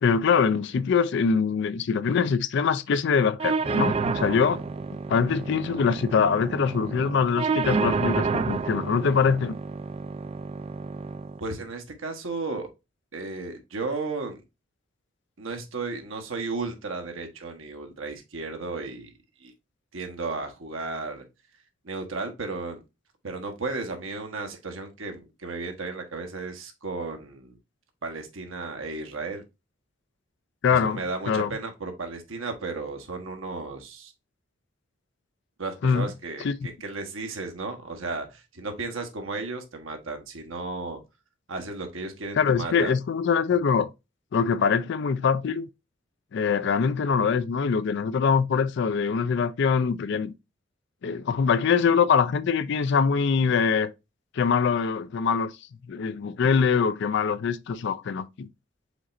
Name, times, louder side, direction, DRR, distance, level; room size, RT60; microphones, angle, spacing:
voice 1, 0.0-4.6 5.1-9.6 30.6-31.5 35.8-36.1 36.4-36.5 42.4-43.9 44.3-45.7 46.3-50.3 51.0-53.9 54.4-55.5 55.9-58.5, left 6 dB, 60° left, 0.4 m, -23 dB
sound 1, 3.4-11.4, right 4 dB, 30° right, 0.3 m, -29 dB
voice 2, 11.4-12.7 13.1-14.4 15.4-19.1 19.4-19.5 19.9-21.2 21.8-22.8 23.2-27.6 28.0-29.4 30.7-34.1 35.6-41.0 41.5-42.9, right 3 dB, 85° right, 1.1 m, -34 dB
5.0 x 4.2 x 2.5 m
head